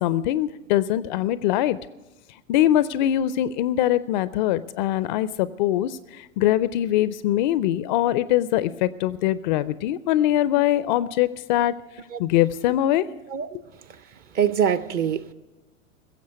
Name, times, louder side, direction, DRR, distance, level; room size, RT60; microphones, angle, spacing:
voice 1, 0.0-1.8 2.5-11.7 12.2-13.0, left 13 dB, 35° left, 17 dB, 0.4 m, -22 dB
voice 2, 14.3-15.3, right 8 dB, 25° right, 14 dB, 0.5 m, -24 dB
16.0 x 7.4 x 9.6 m, 1.0 s
figure-of-eight pair, 100°, 42 cm